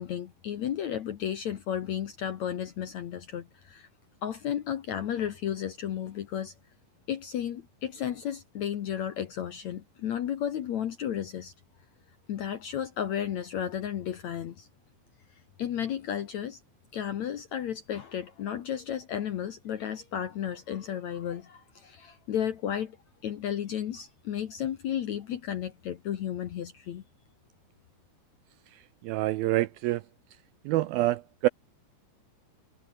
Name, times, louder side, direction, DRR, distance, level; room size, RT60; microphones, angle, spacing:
voice 1, 0.0-3.9 4.2-6.5 7.1-11.5 12.3-14.7 15.6-16.6 16.9-23.0 23.2-27.0, left 9 dB, 65° left, 1.9 m, -33 dB
voice 2, 29.0-30.0 30.7-31.5, right 16 dB, 80° right, 2.2 m, -26 dB
omnidirectional pair, 4.8 m